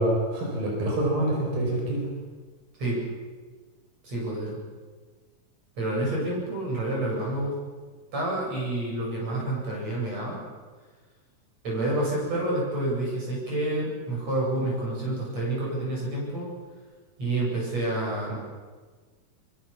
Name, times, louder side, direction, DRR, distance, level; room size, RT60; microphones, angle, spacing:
voice 1, 0.0-2.1, right 1 dB, 80° right, -1 dB, 6.6 m, -26 dB
voice 2, 4.0-4.6 5.8-7.5 8.1-10.4 11.6-16.5 17.2-18.4, right 1 dB, 50° right, -3 dB, 9.3 m, -28 dB
23.5 x 22.5 x 7.3 m, 1.4 s
omnidirectional pair, 4.0 m